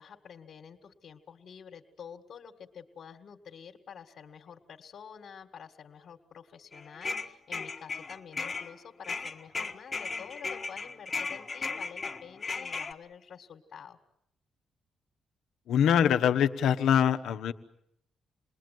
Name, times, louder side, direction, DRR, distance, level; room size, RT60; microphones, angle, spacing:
voice 1, 0.0-14.0, left 7 dB, 65° left, 1 dB, 2.0 m, -48 dB
sound 1, 6.7-8.8 9.0-12.9, left 4 dB, 30° left, 1.5 m, -36 dB
voice 2, 15.7-17.5, left 9 dB, 80° left, 7 dB, 1.2 m, -24 dB
28.5 x 20.5 x 9.3 m, 0.77 s
cardioid pair, 90°, 0 cm